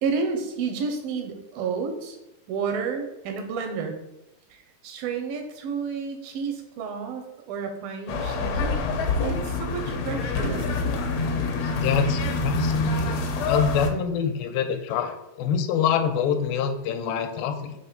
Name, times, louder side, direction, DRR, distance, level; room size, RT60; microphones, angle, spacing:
voice 1, 0.0-2.2 2.5-4.0 4.5-8.8 9.2-10.8, right 5 dB, 85° right, 5 dB, 2.7 m, -31 dB
sound 1, 8.1-13.9, left 3 dB, 75° left, 1.6 m, -26 dB
voice 2, 11.8-17.7, left 7 dB, 90° left, 6 dB, 2.4 m, -26 dB
6.7 x 3.3 x 5.8 m, 0.92 s
omnidirectional pair, 4.1 m